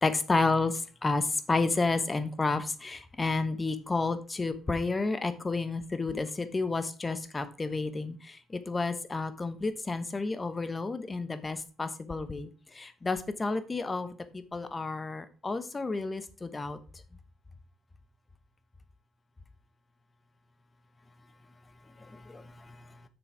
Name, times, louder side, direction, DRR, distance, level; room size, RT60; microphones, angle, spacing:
voice 1, 0.0-8.4 8.7-12.5 12.7-16.8 22.1-22.8, left 3 dB, 25° left, 10 dB, 1.1 m, -31 dB
6.8 x 6.6 x 4.8 m, 0.36 s
cardioid pair, 90°, 0 cm